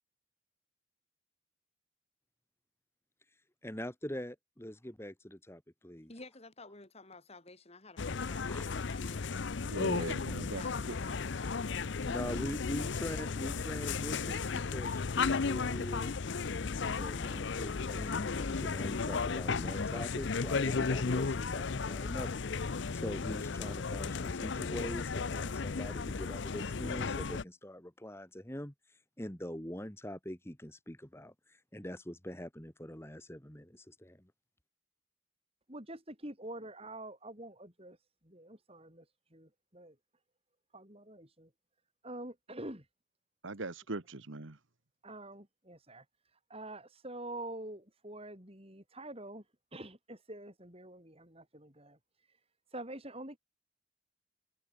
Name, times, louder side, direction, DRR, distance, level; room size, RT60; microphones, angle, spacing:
voice 1, 3.6-6.1 8.4-8.7 12.0-16.2 16.8-34.3, equal, 10° left, 1.8 m, -43 dB
voice 2, 6.1-9.3 9.9-11.9, left 2 dB, 30° left, 2.5 m, -53 dB
sound 1, 8.0-27.4, left 4 dB, 60° left, 0.6 m, -34 dB
voice 3, 9.7-11.0 43.4-44.6, right 2 dB, 65° right, 1.4 m, -40 dB
voice 4, 35.7-38.0 38.2-40.0 40.7-41.5 42.0-42.9 45.0-46.0 46.5-49.4 49.7-52.0 52.7-53.4, right 1 dB, 30° right, 7.9 m, -46 dB
head